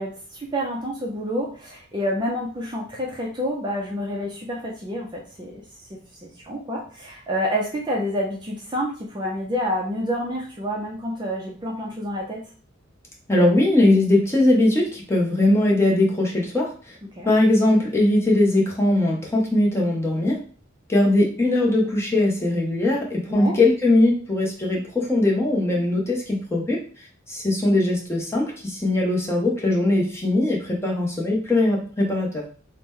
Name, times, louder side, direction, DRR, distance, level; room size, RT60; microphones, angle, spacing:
voice 1, 0.0-5.5 6.2-12.4 17.2-17.3 23.3-23.5, equal, 20° right, -2 dB, 0.4 m, -28 dB
voice 2, 13.3-16.7 17.3-20.4 20.9-26.8 27.3-32.4, left 2 dB, 15° left, -3 dB, 0.7 m, -20 dB
2.9 x 2.1 x 3.5 m, 0.42 s
head